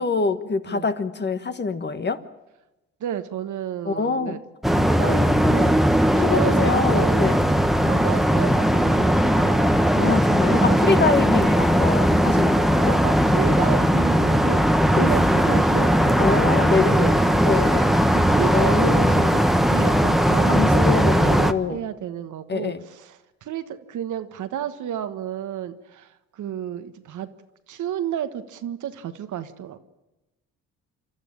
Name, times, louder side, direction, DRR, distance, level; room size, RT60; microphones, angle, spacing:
voice 1, 0.0-2.2 3.8-4.4 5.0-5.3 6.1-7.4 9.9-13.0 14.9-15.1 16.2-17.2 17.4-17.9 18.5-19.4 20.4-21.8 22.5-22.8, left 4 dB, 30° left, 10 dB, 1.6 m, -25 dB
voice 2, 3.0-4.4 4.7-7.3 7.8-9.8 10.5-11.1 13.0-14.6 15.0-17.5 18.1-19.4 19.7-27.3 27.7-29.8, right 10 dB, 60° right, 10 dB, 1.4 m, -31 dB
sound 1, 4.6-21.5, equal, ahead, 1.3 m, -19 dB
27.0 x 13.0 x 8.8 m, 1.0 s
hypercardioid pair, 60°, 34 cm